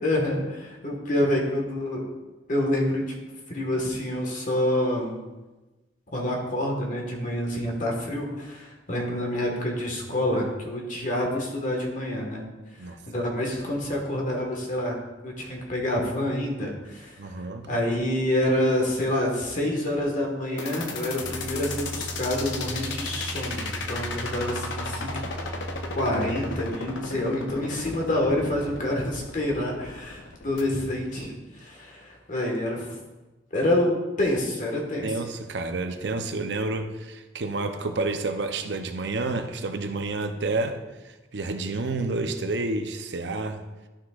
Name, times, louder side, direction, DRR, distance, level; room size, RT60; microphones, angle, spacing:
voice 1, 0.0-2.0 2.5-3.1 3.5-5.2 6.1-12.4 13.1-17.2 17.7-25.2 25.9-32.9 33.5-35.1, left 1 dB, 45° left, 0 dB, 1.5 m, -27 dB
voice 2, 17.2-17.7 35.0-40.8 41.0-43.6, right 3 dB, 70° right, 7 dB, 0.7 m, -29 dB
sound 1, 20.6-30.6, left 4 dB, 90° left, 0.7 m, -35 dB
sound 2, 21.2-26.7, right 2 dB, 50° right, 1.1 m, -37 dB
11.5 x 6.1 x 2.4 m, 1.1 s
head